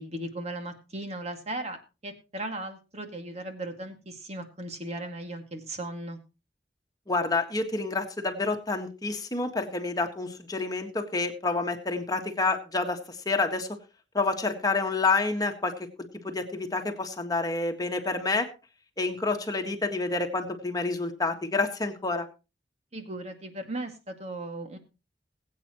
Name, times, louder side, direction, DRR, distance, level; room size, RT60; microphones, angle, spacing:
voice 1, 0.0-6.2 22.9-24.8, right 1 dB, 40° right, 5 dB, 2.2 m, -37 dB
voice 2, 7.1-13.8 14.1-15.9 16.2-18.5 19.0-22.3, left 3 dB, 20° left, 4 dB, 1.7 m, -28 dB
21.0 x 8.6 x 3.1 m, 0.30 s
head